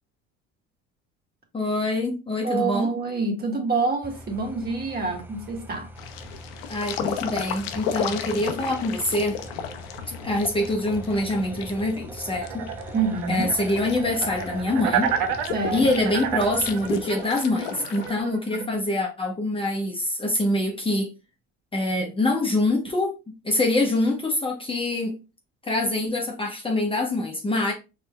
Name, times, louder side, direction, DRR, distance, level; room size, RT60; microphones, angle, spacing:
voice 1, 1.5-2.9 6.7-9.4 10.2-12.7 13.3-15.1 15.7-21.1 21.7-23.2 23.4-25.2 25.6-27.7, left 1 dB, 20° left, 1.0 m, -25 dB
voice 2, 2.4-5.9 12.9-13.5 15.5-15.9 18.5-18.7, right 4 dB, 30° right, 1.7 m, -27 dB
sound 1, 4.0-17.0, right 1 dB, 5° right, 0.6 m, -42 dB
sound 2, 6.0-18.1, left 8 dB, 85° left, 0.7 m, -35 dB
sound 3, 12.3-18.6, right 9 dB, 75° right, 0.8 m, -30 dB
4.2 x 3.4 x 2.2 m
supercardioid pair, 85°, 29 cm